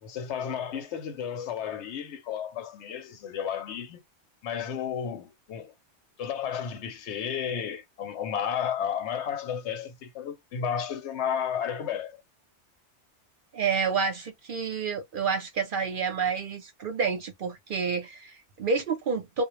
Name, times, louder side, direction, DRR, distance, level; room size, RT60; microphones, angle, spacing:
voice 1, 0.0-4.0 4.4-5.7 6.2-12.2, left 8 dB, 75° left, 0.9 m, -32 dB
voice 2, 13.5-19.4, right 5 dB, 60° right, 0.6 m, -29 dB
2.1 x 2.0 x 2.9 m
omnidirectional pair, 1.2 m